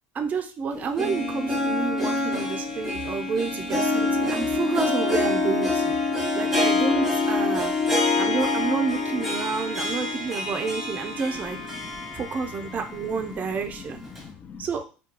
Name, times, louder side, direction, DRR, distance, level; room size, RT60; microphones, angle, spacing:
voice 1, 0.1-5.9 6.3-7.7 8.2-11.6 12.1-14.0 14.6-14.8, right 5 dB, 35° right, 6 dB, 0.4 m, -29 dB
Harp, 0.7-12.9 13.2-13.3 14.2-14.3, left 2 dB, ahead, 1.3 m, -26 dB
voice 2, 11.5-12.3 12.7-14.8, left 6 dB, 35° left, 9 dB, 0.4 m, -44 dB
2.3 x 2.2 x 2.8 m, 0.34 s
supercardioid pair, 95°, 5 cm